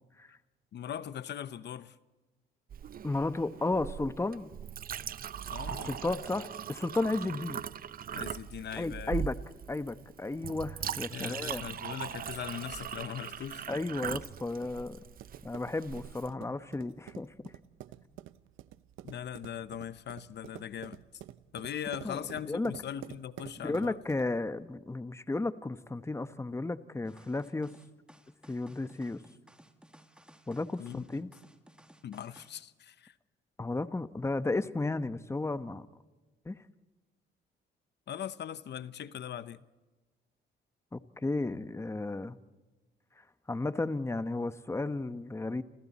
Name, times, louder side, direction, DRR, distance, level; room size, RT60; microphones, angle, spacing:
voice 1, 0.7-2.0 5.5-5.9 8.1-9.2 11.1-13.7 19.0-21.0 21.5-24.0 30.8-31.0 32.0-33.2 38.1-39.6, left 9 dB, 60° left, 0.9 m, -40 dB
Chink clink, 2.7-16.3, right 9 dB, 45° right, 0.6 m, -40 dB
voice 2, 3.0-4.5 5.7-7.6 8.8-9.4 9.7-11.7 13.7-15.0 15.4-17.3 22.0-22.2 22.5-22.7 23.6-27.7 28.5-29.2 30.5-31.3 33.6-35.9 36.4-36.6 40.9-42.4 43.2-45.6, left 2 dB, 15° left, 1.0 m, -33 dB
sound 1, 15.2-24.4, right 13 dB, 85° right, 0.8 m, -49 dB
sound 2, 27.0-32.6, right 1 dB, 5° right, 2.3 m, -58 dB
29.5 x 27.0 x 4.2 m
cardioid pair, 90°, 20 cm